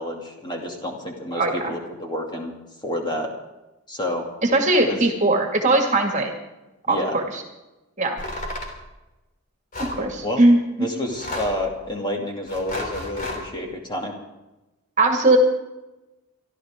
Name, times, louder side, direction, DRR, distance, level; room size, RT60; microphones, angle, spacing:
voice 1, 0.0-2.5 2.8-3.3 3.9-4.3 4.9-5.0 6.9-7.2 9.9-10.4 10.8-14.1, left 1 dB, 20° left, 1 dB, 2.5 m, -29 dB
voice 2, 1.3-1.7 4.4-6.3 6.9-7.4 8.0-8.2 9.8-11.0 15.0-15.4, right 2 dB, 35° right, 3 dB, 2.1 m, -20 dB
sound 1, 8.2-8.8 9.7-10.0 11.1-11.7 12.5-13.4, left 1 dB, 40° left, 3.2 m, -32 dB
26.0 x 12.5 x 3.7 m, 1.0 s
head